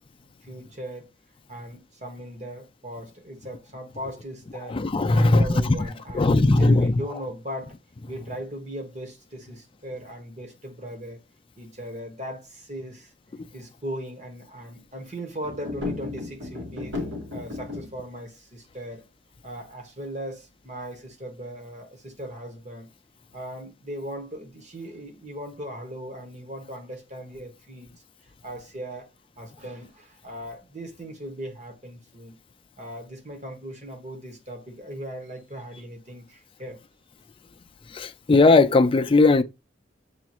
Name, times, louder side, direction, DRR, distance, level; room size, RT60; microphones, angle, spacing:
voice 1, 0.5-1.1 1.5-4.8 5.1-7.8 8.1-11.2 11.6-13.1 13.5-16.9 17.3-19.1 19.4-22.9 23.3-27.9 28.4-29.1 29.4-32.4 32.8-36.8, equal, 40° right, 1.3 m, -38 dB
voice 2, 4.7-5.4 6.1-6.9 37.9-39.4, left 3 dB, 30° left, 0.4 m, -18 dB
sound 1, 15.4-18.0, left 3 dB, 90° right, 1.8 m, -34 dB
6.9 x 2.5 x 2.9 m
head